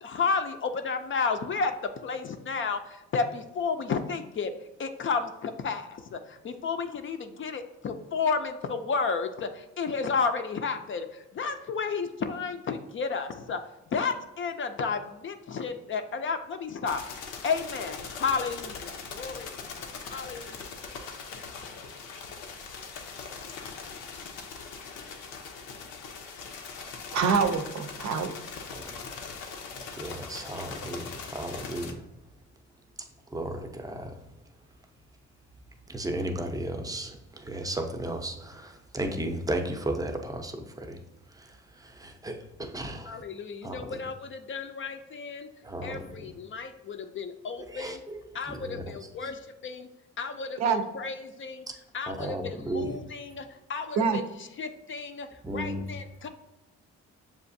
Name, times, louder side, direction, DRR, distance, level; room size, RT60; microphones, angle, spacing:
voice 1, 0.0-4.5 4.8-13.6 13.9-19.5 19.8-20.7 43.1-45.5 45.8-48.0 48.3-49.9 50.2-51.7 51.9-54.3 54.6-56.3, left 5 dB, 40° left, 8 dB, 0.4 m, -32 dB
sound 1, 16.8-31.9, left 5 dB, 90° left, 0.7 m, -41 dB
voice 2, 27.1-28.3 50.6-50.8 54.0-54.2, right 5 dB, 65° right, 8 dB, 0.6 m, -25 dB
voice 3, 28.7-29.1 29.7-32.0 33.0-34.2 35.9-41.0 41.3-43.2 43.6-44.0 45.6-46.3 47.7-48.9 49.2-49.3 52.1-53.0 55.4-56.0, right 1 dB, 10° right, 4 dB, 0.5 m, -35 dB
6.9 x 2.4 x 2.6 m, 0.99 s
cardioid pair, 90°, 30 cm